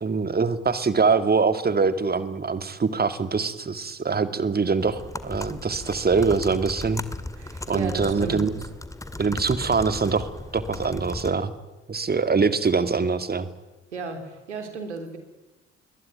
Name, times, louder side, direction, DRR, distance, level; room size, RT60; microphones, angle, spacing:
voice 1, 0.0-7.0 7.7-8.5 9.2-10.3 10.5-11.5 11.9-13.5, right 4 dB, 25° right, 11 dB, 2.3 m, -23 dB
sound 1, 4.8-11.3, left 2 dB, 10° left, 2.3 m, -36 dB
voice 2, 7.3-8.4 13.9-15.2, right 4 dB, 85° right, 6 dB, 3.3 m, -34 dB
26.5 x 22.0 x 9.4 m, 1.1 s
figure-of-eight pair, 45°, 34 cm